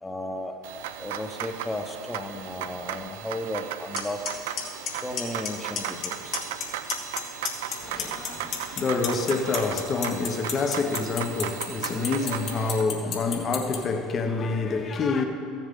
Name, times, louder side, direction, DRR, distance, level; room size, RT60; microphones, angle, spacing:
voice 1, 0.0-0.5 1.0-4.2 5.0-6.4, left 1 dB, 15° left, 1.1 m, -34 dB
sound 1, 0.6-12.8, right 10 dB, 75° right, 0.4 m, -36 dB
Clock, 4.0-4.1 4.3-4.6 4.9-5.5 5.8-6.1 6.3-7.2 7.5-13.8, left 8 dB, 60° left, 1.7 m, -29 dB
voice 2, 7.8-15.2, left 4 dB, 40° left, 1.1 m, -27 dB
14.5 x 7.2 x 3.8 m
hypercardioid pair, 75°, 0 cm